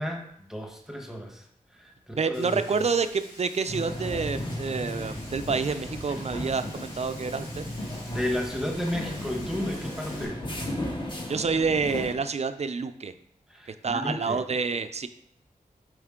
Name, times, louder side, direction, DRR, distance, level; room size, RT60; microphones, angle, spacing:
voice 1, 0.0-1.5 1.7-2.9 8.1-10.4 13.5-14.4, equal, 5° right, 2 dB, 1.1 m, -33 dB
voice 2, 2.2-7.6 11.3-13.1 13.8-15.1, right 5 dB, 50° right, 10 dB, 0.5 m, -28 dB
Frying (food), 2.3-10.2, left 1 dB, 75° left, 2.8 m, -48 dB
sound 1, 3.7-12.2, left 1 dB, 35° left, 1.4 m, -35 dB
7.9 x 5.1 x 3.7 m, 0.69 s
wide cardioid pair, 110°, 14 cm